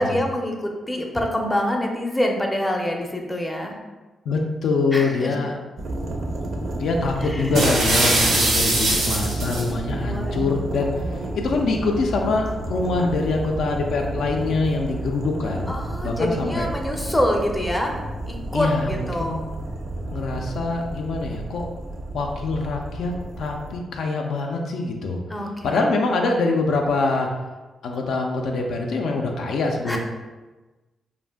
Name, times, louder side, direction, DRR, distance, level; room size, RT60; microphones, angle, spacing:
voice 1, 0.0-3.8 4.9-5.3 7.2-7.7 10.0-11.2 15.7-17.9 18.2-19.4 25.3-25.9 29.9-30.0, left 1 dB, 10° left, 1 dB, 0.4 m, -26 dB
voice 2, 4.3-5.5 6.7-10.9 11.3-15.7 16.0-16.6 18.5-19.4 20.1-21.6 22.1-25.2 25.6-27.3 27.8-30.0, left 3 dB, 80° left, 1 dB, 0.3 m, -24 dB
sound 1, 5.8-23.8, right 1 dB, 60° right, 0.4 m, -31 dB
sound 2, 7.5-9.7, right 1 dB, 90° right, 0.8 m, -21 dB
2.5 x 2.1 x 3.3 m, 1.2 s
cardioid pair, 75°, 0 cm